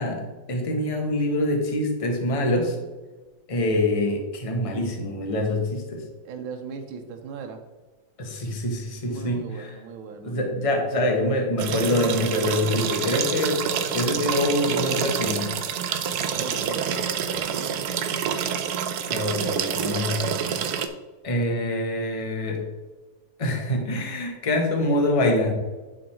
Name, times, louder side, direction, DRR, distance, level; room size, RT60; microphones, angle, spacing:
voice 1, 0.0-2.8 3.5-6.0 8.2-9.7 10.2-13.7 13.9-15.5 19.1-20.6 21.2-22.6 23.4-25.5, left 1 dB, 20° left, 2 dB, 1.0 m, -25 dB
voice 2, 6.2-7.6 9.1-10.3 16.2-17.0 17.4-17.7, right 5 dB, 90° right, 5 dB, 1.6 m, -38 dB
sound 1, 11.6-20.9, right 7 dB, 70° right, 1.0 m, -27 dB
10.5 x 3.8 x 4.4 m, 1.2 s
omnidirectional pair, 2.2 m